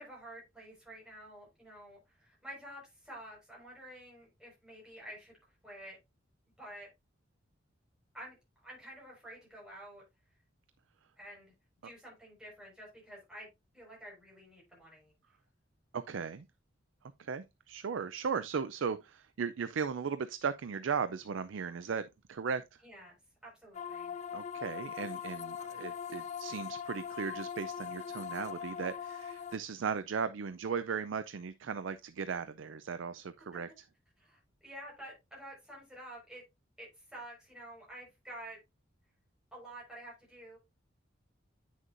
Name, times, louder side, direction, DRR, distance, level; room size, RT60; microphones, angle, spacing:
voice 1, 0.0-5.4 5.6-6.0 6.6-6.9 8.1-8.4 8.6-10.0 11.2-11.5 11.8-13.5 13.7-15.1 22.8-23.2 23.4-24.2 33.5-33.6 34.2-36.4 36.8-38.6 39.5-40.6, right 1 dB, 5° right, 5.1 m, -49 dB
voice 2, 15.9-16.5 17.2-22.6 24.3-33.7, right 6 dB, 75° right, 0.4 m, -37 dB
sound 1, 23.7-29.6, left 8 dB, 35° left, 0.4 m, -41 dB
9.1 x 6.4 x 2.6 m
head